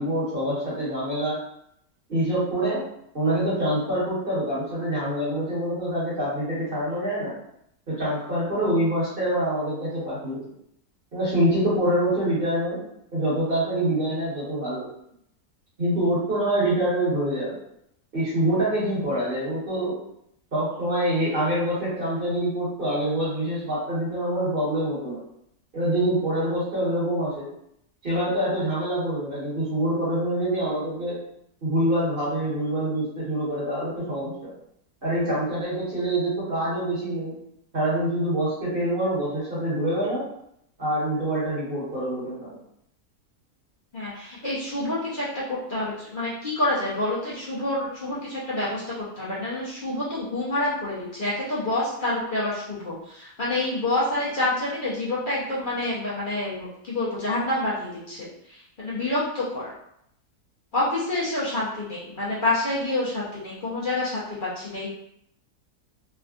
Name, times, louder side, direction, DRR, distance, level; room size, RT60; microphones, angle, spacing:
voice 1, 0.0-1.4 2.1-2.8 3.1-7.3 7.9-10.4 11.1-12.8 13.1-14.8 15.8-17.6 18.1-20.0 20.5-25.2 25.7-27.5 28.0-31.2 31.6-34.5 35.0-37.3 37.7-40.2 40.8-42.5, right 1 dB, 35° right, -9 dB, 1.4 m, -25 dB
voice 2, 43.9-59.7 60.7-64.9, left 2 dB, 45° left, -8 dB, 0.7 m, -28 dB
3.4 x 2.3 x 2.4 m, 0.75 s
omnidirectional pair, 1.7 m